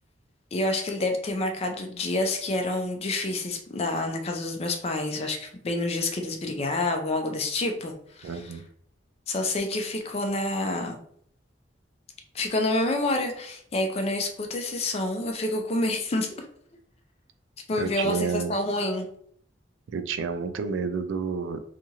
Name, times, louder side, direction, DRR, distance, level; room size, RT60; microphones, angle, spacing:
voice 1, 0.5-8.3 9.3-11.0 12.3-16.3 17.7-19.1, left 2 dB, 35° left, 4 dB, 0.4 m, -28 dB
voice 2, 8.2-8.6 17.8-18.5 19.9-21.6, right 5 dB, 80° right, 9 dB, 0.3 m, -30 dB
2.8 x 2.4 x 2.7 m, 0.65 s
head